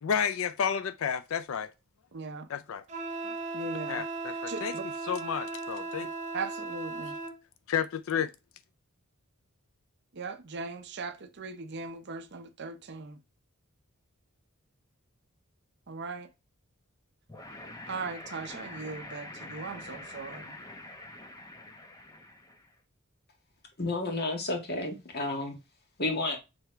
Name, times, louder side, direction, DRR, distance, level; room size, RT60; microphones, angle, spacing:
voice 1, 0.0-1.7 2.5-2.8 3.9-6.1 7.7-8.3, left 7 dB, 70° left, 0.4 m, -31 dB
voice 2, 2.1-2.5 3.5-4.0 4.5-4.8 6.3-7.1 10.2-13.2 15.9-16.3 17.9-20.4, right 4 dB, 55° right, 0.7 m, -39 dB
Wind instrument woodwind instrument, 2.9-7.4, right 3 dB, 35° right, 1.0 m, -37 dB
sound 1, 17.3-22.7, left 1 dB, 15° left, 1.0 m, -45 dB
voice 3, 23.8-25.5 26.0-26.4, left 2 dB, 50° left, 1.7 m, -31 dB
6.6 x 3.4 x 4.5 m
head